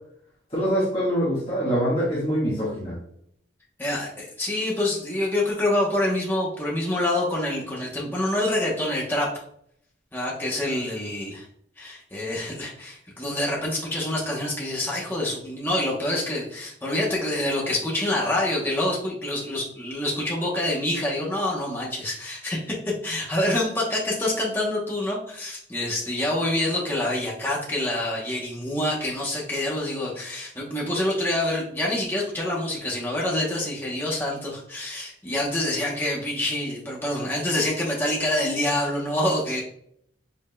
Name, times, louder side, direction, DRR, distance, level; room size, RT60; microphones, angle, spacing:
voice 1, 0.5-3.0, equal, 30° left, -8 dB, 1.6 m, -24 dB
voice 2, 3.8-9.4 10.1-11.5 11.8-39.6, left 1 dB, 10° left, -4 dB, 0.9 m, -26 dB
5.3 x 3.5 x 2.2 m, 0.68 s
head